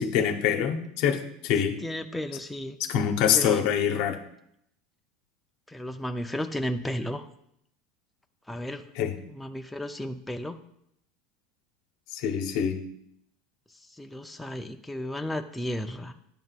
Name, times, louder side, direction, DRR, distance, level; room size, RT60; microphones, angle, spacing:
voice 1, 0.0-1.8 2.8-4.2 8.9-9.1 12.1-12.8, left 8 dB, 60° left, 7 dB, 0.8 m, -25 dB
voice 2, 1.8-2.8 3.3-3.7 5.7-7.2 8.5-8.8 9.3-10.6 14.0-16.1, left 1 dB, 5° left, 5 dB, 0.4 m, -33 dB
10.5 x 3.8 x 2.4 m, 0.73 s
supercardioid pair, 110°, 0 cm